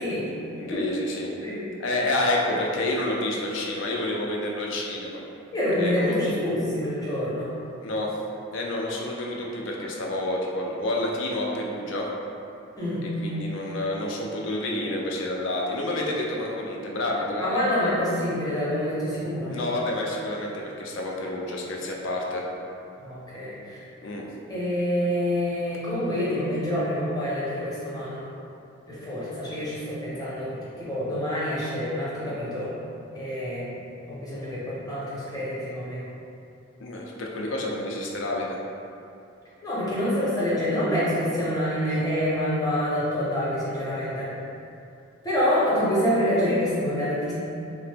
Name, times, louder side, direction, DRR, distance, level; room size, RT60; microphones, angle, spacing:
voice 1, 0.0-1.3 1.8-5.2 5.8-6.3 7.8-8.2 8.5-12.1 13.2-17.6 19.5-22.4 24.0-24.3 36.8-38.6, left 1 dB, 65° left, -2 dB, 0.4 m, -29 dB
voice 2, 5.5-7.5 12.8-13.1 17.4-19.6 23.0-23.8 24.5-28.3 28.9-32.8 33.1-33.8 34.1-36.0 39.6-44.3 45.2-47.3, equal, 20° left, -9 dB, 0.7 m, -27 dB
2.8 x 2.1 x 3.3 m, 2.6 s
head